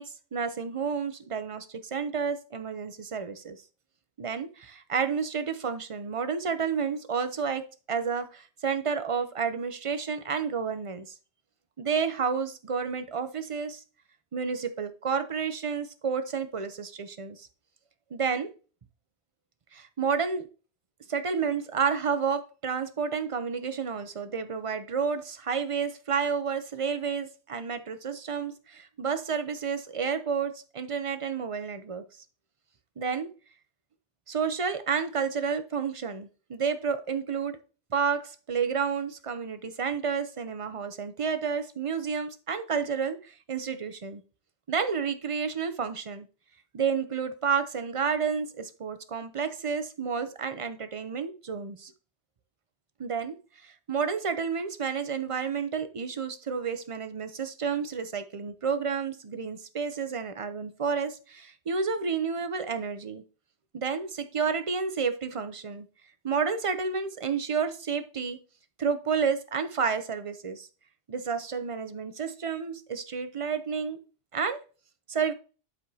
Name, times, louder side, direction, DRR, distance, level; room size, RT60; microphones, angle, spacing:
voice 1, 0.0-3.6 4.2-11.1 11.8-13.8 14.3-17.5 18.1-18.5 19.7-20.5 21.1-32.0 33.0-33.3 34.3-37.6 37.9-44.2 44.7-46.3 46.7-51.9 53.0-53.4 53.6-63.2 63.7-65.9 66.2-68.4 68.8-70.7 71.1-74.0 74.3-74.6 75.1-75.3, right 6 dB, 35° right, 0.6 m, -30 dB
11.5 x 4.8 x 2.8 m
omnidirectional pair, 1.1 m